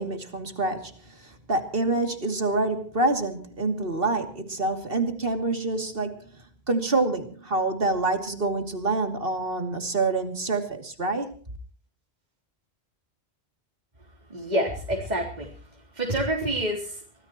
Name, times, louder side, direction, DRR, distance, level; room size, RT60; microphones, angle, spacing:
voice 1, 0.0-11.4, right 2 dB, 55° right, 6 dB, 2.9 m, -27 dB
voice 2, 14.3-15.5 16.0-16.9, right 1 dB, 40° right, -1 dB, 3.8 m, -27 dB
25.0 x 18.5 x 3.0 m, 0.41 s
omnidirectional pair, 1.1 m